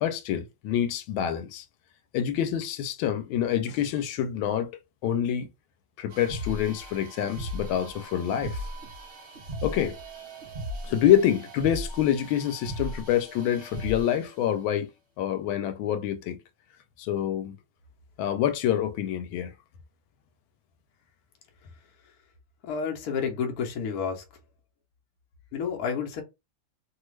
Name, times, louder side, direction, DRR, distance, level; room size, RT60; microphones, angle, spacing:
voice 1, 0.0-1.6 2.1-4.7 5.0-5.5 6.0-8.6 9.6-9.9 10.8-14.9 15.2-16.4 17.0-17.6 18.2-19.5, left 10 dB, 90° left, 1.4 m, -26 dB
sound 1, 6.1-14.3, equal, 70° right, 0.6 m, -38 dB
voice 2, 22.6-24.2 25.5-26.2, left 6 dB, 60° left, 1.1 m, -30 dB
3.1 x 2.3 x 3.1 m
omnidirectional pair, 2.2 m